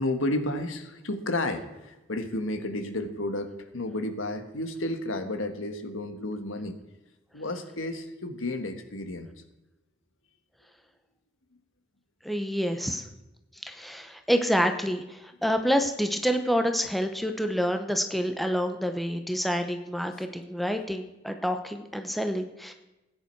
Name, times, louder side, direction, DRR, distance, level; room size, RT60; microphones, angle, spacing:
voice 1, 0.0-6.7 7.3-9.3, left 1 dB, 90° left, 7 dB, 1.5 m, -32 dB
voice 2, 12.2-13.0 13.6-22.7, equal, ahead, 6 dB, 0.8 m, -28 dB
16.0 x 9.7 x 4.6 m, 0.99 s
head